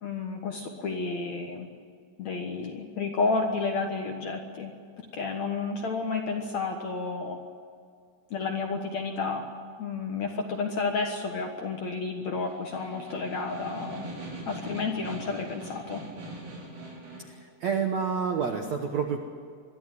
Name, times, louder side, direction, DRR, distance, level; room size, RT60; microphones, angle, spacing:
voice 1, 0.0-1.7 2.2-4.7 5.1-7.4 8.3-9.5 9.8-14.0 14.5-16.0, left 4 dB, 60° left, 3 dB, 2.0 m, -31 dB
Snare drum, 12.4-17.4, right 1 dB, 50° right, 6.7 m, -41 dB
voice 2, 17.2-19.2, right 6 dB, 70° right, 4 dB, 1.7 m, -29 dB
23.0 x 14.0 x 9.2 m, 2.2 s
omnidirectional pair, 5.0 m